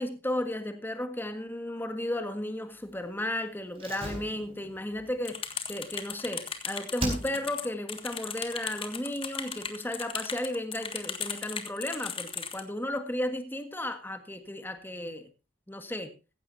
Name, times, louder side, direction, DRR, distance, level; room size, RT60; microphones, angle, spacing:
voice 1, 0.0-15.3 15.7-16.1, left 1 dB, 10° left, 1.7 m, -34 dB
Slam, 3.7-6.5 7.0-7.7 8.0-8.1, right 2 dB, 30° right, 4.6 m, -38 dB
sound 1, 5.2-12.6, left 6 dB, 30° left, 1.6 m, -37 dB
15.5 x 15.5 x 2.8 m
head